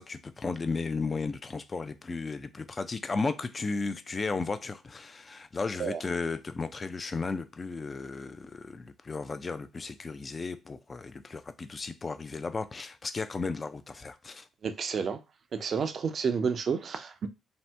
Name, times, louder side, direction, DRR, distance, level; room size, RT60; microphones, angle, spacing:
voice 1, 0.0-14.4, left 4 dB, 35° left, 0.4 m, -34 dB
voice 2, 14.6-15.2 15.5-17.3, right 6 dB, 50° right, 0.4 m, -30 dB
2.8 x 2.1 x 3.3 m
supercardioid pair, 65°, 0 cm